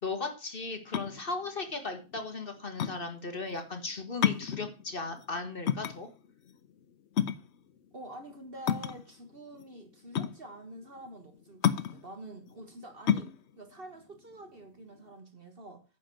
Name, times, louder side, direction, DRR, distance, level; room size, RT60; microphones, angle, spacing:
voice 1, 0.0-6.1, left 3 dB, 40° left, 1.8 m, -37 dB
sound 1, 0.7-15.1, left 9 dB, 60° left, 0.9 m, -32 dB
voice 2, 7.9-15.8, right 1 dB, 40° right, 1.6 m, -47 dB
9.7 x 5.2 x 7.7 m
omnidirectional pair, 1.5 m